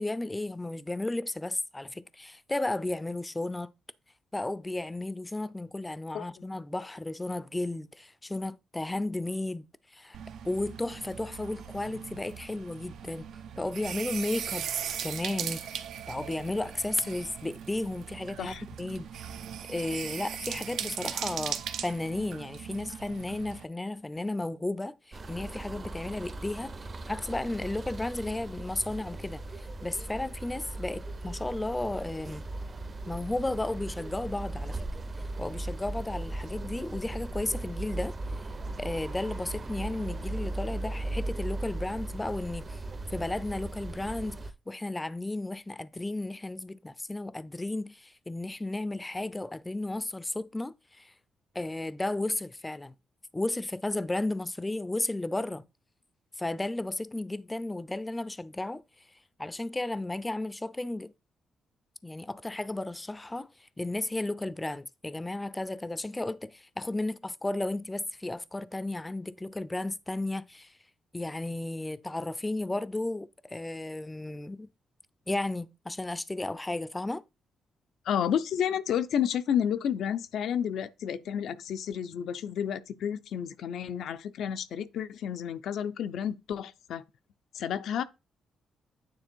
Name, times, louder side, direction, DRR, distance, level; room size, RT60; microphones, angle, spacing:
voice 1, 0.0-3.7 4.3-9.7 9.9-10.2 10.4-13.3 13.6-14.7 15.0-15.7 16.1-19.1 19.7-26.7 27.1-32.4 33.1-34.8 35.4-38.1 38.8-42.8 43.1-51.1 51.5-52.9 53.3-55.6 56.4-58.8 59.4-61.1 62.0-70.7 71.1-74.7 75.3-77.2, left 2 dB, 15° left, 0.5 m, -34 dB
sound 1, 10.1-23.6, right 8 dB, 75° right, 0.9 m, -39 dB
sound 2, 25.1-44.5, right 2 dB, 40° right, 0.9 m, -38 dB
voice 2, 78.0-87.0 87.5-88.0, left 9 dB, 75° left, 0.6 m, -31 dB
9.2 x 3.4 x 4.4 m
cardioid pair, 70°, 0 cm